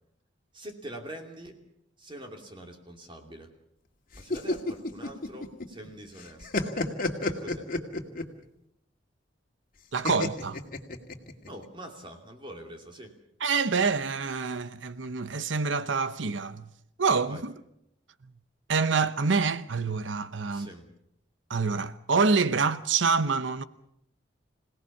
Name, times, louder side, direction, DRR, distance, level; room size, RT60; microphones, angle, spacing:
voice 1, 0.5-1.6 2.0-3.5 4.2-6.7 7.2-7.7 11.5-13.1 17.2-17.4 20.5-20.9, right 1 dB, 25° right, 2.7 m, -44 dB
sound 1, 4.1-5.9 6.2-8.4 10.0-11.5, left 2 dB, 50° left, 2.2 m, -30 dB
voice 2, 9.9-10.6 13.4-16.7 17.0-17.5 18.7-20.7 21.5-23.6, right 4 dB, 75° right, 0.9 m, -26 dB
26.5 x 18.0 x 7.2 m
head